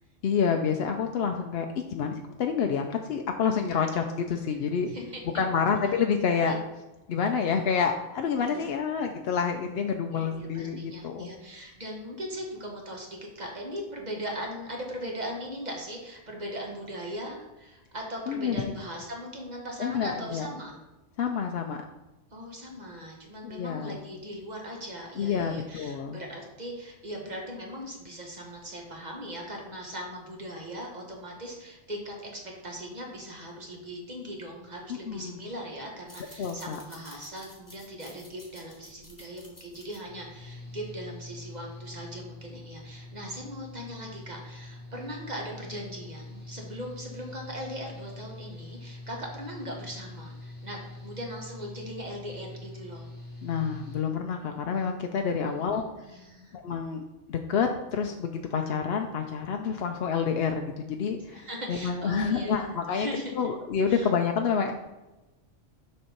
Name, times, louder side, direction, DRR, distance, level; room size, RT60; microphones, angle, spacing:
voice 1, 0.2-4.9 5.3-6.6 7.1-11.3 18.3-18.6 19.8-20.5 21.2-21.8 23.4-24.0 25.2-26.2 34.9-35.4 36.4-36.8 53.4-55.9 56.5-63.1 63.4-64.7, left 6 dB, 60° left, 4 dB, 0.7 m, -28 dB
voice 2, 4.9-5.4 6.5-6.6 8.4-8.6 10.1-20.7 22.3-53.1 55.5-56.6 61.3-63.4 63.9-64.1, equal, 35° right, -1 dB, 1.4 m, -39 dB
sound 1, 36.0-41.1, left 1 dB, 15° left, 1.4 m, -52 dB
Engine / Mechanical fan, 40.0-54.0, left 2 dB, 10° right, 1.8 m, -44 dB
6.6 x 5.4 x 4.4 m, 1.1 s
omnidirectional pair, 1.3 m